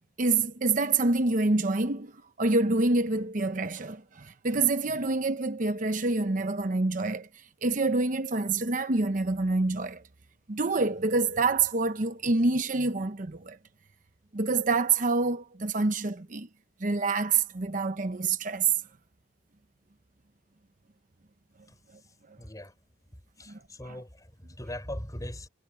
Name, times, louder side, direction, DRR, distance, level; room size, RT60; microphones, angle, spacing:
voice 1, 0.2-2.1 2.4-7.3 7.6-10.0 10.5-13.6 14.3-16.5 16.8-18.7 23.5-24.0, right 3 dB, 45° right, 0.9 m, -27 dB
voice 2, 22.4-22.7 23.4-25.5, left 1 dB, 20° left, 4.2 m, -40 dB
head